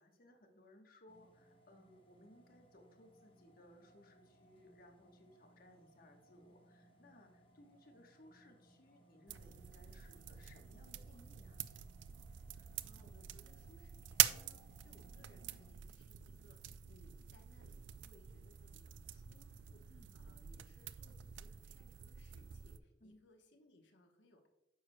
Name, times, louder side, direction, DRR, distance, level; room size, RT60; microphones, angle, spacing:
voice 1, 0.0-11.6 19.9-20.1 23.0-23.2, left 1 dB, 55° left, 3 dB, 1.1 m, -63 dB
sound 1, 1.1-15.7, right 1 dB, 30° left, 0.8 m, -67 dB
sound 2, 9.3-22.8, right 12 dB, 90° right, 0.3 m, -43 dB
voice 2, 12.5-24.5, left 1 dB, 90° left, 3 dB, 1.0 m, -67 dB
9.2 x 6.4 x 2.2 m, 0.97 s
head